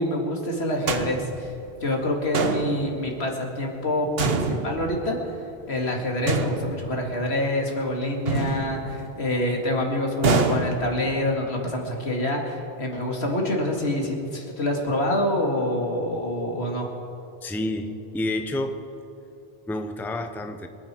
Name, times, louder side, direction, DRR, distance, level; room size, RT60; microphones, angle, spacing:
voice 1, 0.0-1.5 1.8-5.3 5.7-16.9, left 1 dB, 80° left, 1 dB, 2.5 m, -26 dB
sound 1, 0.9-1.7 2.3-3.2 4.2-5.3 6.3-7.2 8.2-9.3 10.2-11.3, right 3 dB, 70° right, 1.2 m, -26 dB
voice 2, 17.4-18.8 19.7-20.7, left 1 dB, ahead, 7 dB, 0.7 m, -29 dB
26.0 x 9.6 x 4.5 m, 2.9 s
omnidirectional pair, 1.1 m